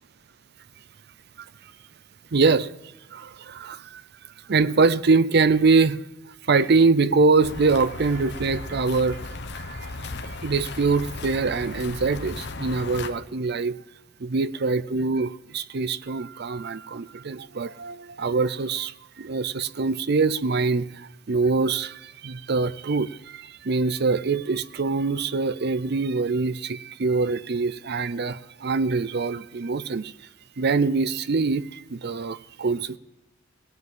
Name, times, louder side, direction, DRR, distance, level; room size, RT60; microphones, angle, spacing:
voice 1, 2.3-2.7 3.1-4.0 4.5-6.0 6.5-9.2 9.5-9.9 10.4-13.8 14.2-30.1 30.6-33.0, right 4 dB, 55° right, 17 dB, 0.6 m, -24 dB
sound 1, 7.4-13.1, left 3 dB, 55° left, 1.1 m, -36 dB
18.0 x 9.4 x 7.5 m, 1.0 s
head